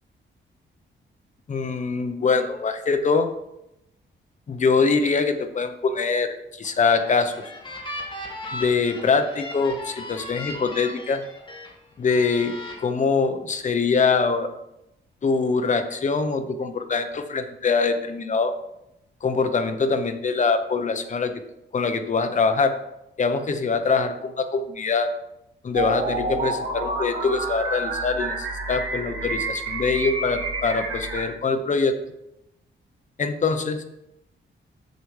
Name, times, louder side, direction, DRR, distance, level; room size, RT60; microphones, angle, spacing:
voice 1, 1.5-3.3 4.5-7.3 8.5-11.2 12.0-14.5 15.2-18.5 19.2-21.3 21.7-22.7 23.2-25.1 25.6-32.0 33.2-33.8, left 4 dB, 40° left, 8 dB, 0.8 m, -23 dB
sound 1, 6.6-11.7 12.1-12.7, left 1 dB, 25° left, 1.6 m, -37 dB
sound 2, 25.7-31.2, right 3 dB, 85° right, 2.4 m, -29 dB
8.0 x 6.9 x 3.2 m, 0.86 s
wide cardioid pair, 125°, 20 cm